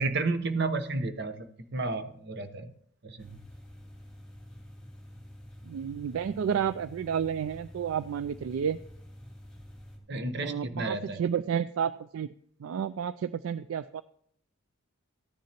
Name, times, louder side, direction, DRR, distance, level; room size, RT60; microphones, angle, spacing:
voice 1, 0.0-2.7 3.0-3.3 10.1-11.2, right 3 dB, 50° right, 9 dB, 0.9 m, -31 dB
sound 1, 3.2-10.0, equal, 5° left, 2.9 m, -48 dB
voice 2, 5.6-8.8 10.4-12.3 12.6-14.0, right 8 dB, 70° right, 14 dB, 0.3 m, -31 dB
15.5 x 10.5 x 3.0 m, 0.67 s
head